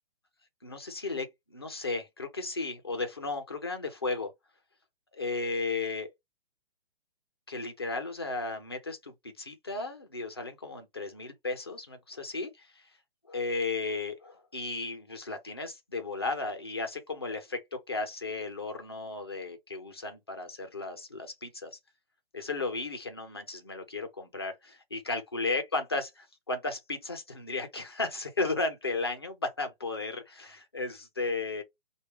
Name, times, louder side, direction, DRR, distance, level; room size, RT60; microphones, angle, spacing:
voice 1, 0.6-4.3 5.1-6.1 7.5-12.8 13.3-21.8 22.3-31.6, left 3 dB, 25° left, 0.4 m, -34 dB
4.5 x 2.2 x 3.1 m
hypercardioid pair, 175°, 31 cm